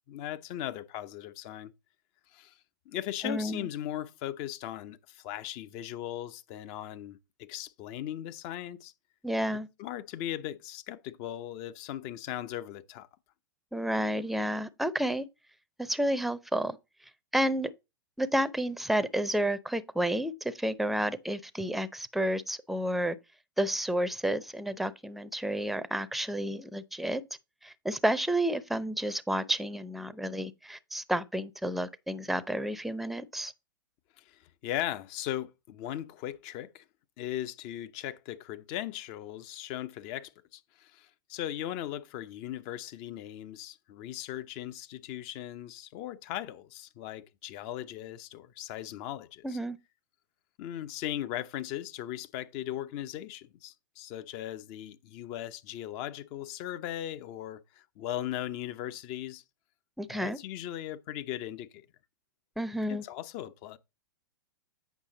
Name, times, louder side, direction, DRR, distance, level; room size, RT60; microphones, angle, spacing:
voice 1, 0.1-1.7 2.3-2.6 2.9-8.9 9.8-13.1 34.2-36.8 37.2-49.6 50.6-59.4 60.1-61.8 62.9-63.8, left 12 dB, 45° left, 0.8 m, -38 dB
voice 2, 3.2-3.7 9.2-9.7 13.7-15.3 15.8-16.8 17.3-17.7 18.2-23.2 23.6-27.2 27.6-33.5 49.4-49.8 60.0-60.4 62.6-63.0, right 1 dB, ahead, 0.7 m, -30 dB
8.4 x 5.7 x 3.9 m
hypercardioid pair, 105°, 11 cm